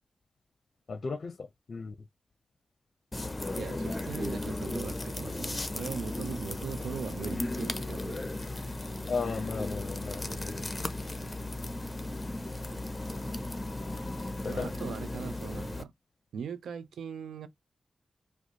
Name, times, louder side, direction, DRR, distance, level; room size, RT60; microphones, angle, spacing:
voice 1, 0.9-2.0 9.1-10.7 14.4-14.7, left 4 dB, 60° left, 0.6 m, -35 dB
sound 1, 3.1-15.8, left 2 dB, 30° left, 0.8 m, -36 dB
voice 2, 3.5-8.3 14.5-15.9 16.3-17.5, right 7 dB, 90° right, 0.5 m, -40 dB
4.9 x 2.1 x 3.9 m
supercardioid pair, 40°, 0 cm